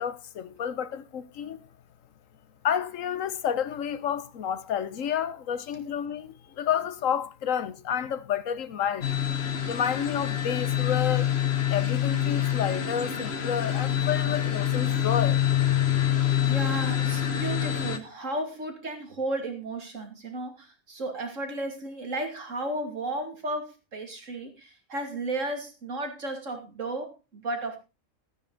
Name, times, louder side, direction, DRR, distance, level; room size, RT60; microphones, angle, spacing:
voice 1, 0.0-1.6 2.6-9.1 9.6-11.3 11.7-15.4, left 8 dB, 75° left, 1.2 m, -30 dB
sound 1, 9.0-18.0, left 10 dB, 50° left, 1.4 m, -26 dB
voice 2, 15.8-27.8, right 2 dB, 65° right, 3.0 m, -34 dB
14.0 x 9.5 x 3.9 m
omnidirectional pair, 1.4 m